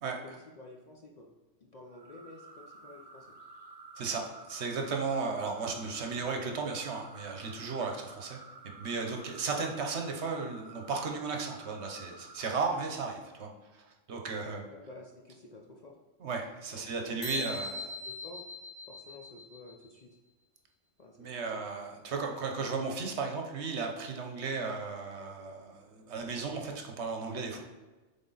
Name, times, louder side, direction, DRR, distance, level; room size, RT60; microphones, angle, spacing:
voice 1, 0.2-1.3 1.6-3.4 14.7-16.0 16.7-18.4 18.9-20.1 21.0-21.6, left 2 dB, 45° left, 0 dB, 0.6 m, -51 dB
sound 1, 1.9-12.7, right 2 dB, 35° right, 0.9 m, -51 dB
voice 2, 4.0-8.4 8.6-14.6 16.2-17.7 21.2-27.6, right 4 dB, 65° right, 3 dB, 1.1 m, -35 dB
sound 2, 17.2-19.8, left 2 dB, 65° left, 1.8 m, -40 dB
7.9 x 3.7 x 4.0 m, 1.2 s
omnidirectional pair, 1.3 m